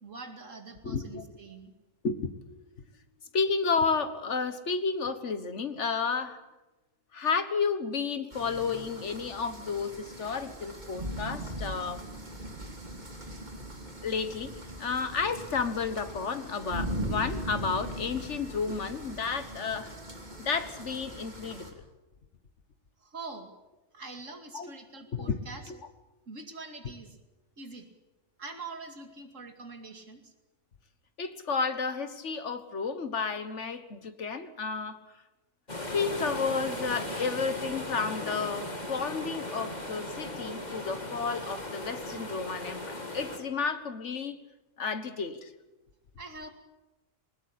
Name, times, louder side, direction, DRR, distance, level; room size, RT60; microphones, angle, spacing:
voice 1, 0.0-1.7 23.0-23.5 23.9-25.7 26.3-27.2 27.6-27.9 28.4-30.3 46.2-46.5, right 3 dB, 75° right, 6 dB, 2.8 m, -44 dB
voice 2, 0.8-1.2 2.0-2.4 3.3-6.4 7.1-12.0 14.0-14.5 14.8-19.9 20.4-21.7 24.5-24.7 25.1-25.4 25.7-25.8 31.2-35.0 35.9-44.4 44.8-45.5, left 5 dB, 65° left, 11 dB, 1.8 m, -31 dB
sound 1, 8.3-21.7, equal, 35° right, 3.1 m, -40 dB
sound 2, 35.7-43.4, left 1 dB, 35° left, 3.1 m, -37 dB
21.5 x 19.5 x 8.6 m, 1.1 s
omnidirectional pair, 1.3 m